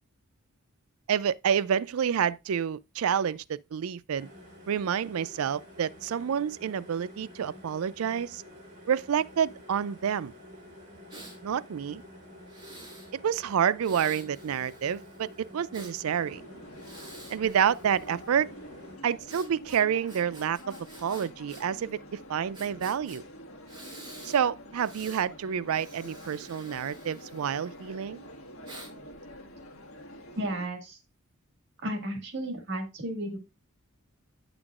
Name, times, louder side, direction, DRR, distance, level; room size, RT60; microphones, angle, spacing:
voice 1, 1.1-4.3 4.7-8.4 8.9-10.3 11.4-12.0 13.1-16.4 17.3-18.5 19.0-23.2 24.2-28.2, right 8 dB, 75° right, 0.4 m, -28 dB
sound 1, 4.1-19.0, left 1 dB, 35° right, 2.7 m, -50 dB
Breathing, 11.1-11.4 12.5-13.1 13.8-15.9 16.7-18.3 19.3-21.6 21.9-22.0 22.5-23.2 23.7-24.4 24.7-25.2 25.7-27.9 28.6-28.9, right 2 dB, 20° right, 5.5 m, -49 dB
sound 2, 16.2-30.7, equal, 65° left, 1.6 m, -47 dB
voice 2, 30.4-31.0 31.8-33.4, right 1 dB, 55° right, 1.8 m, -33 dB
9.5 x 7.0 x 2.4 m
head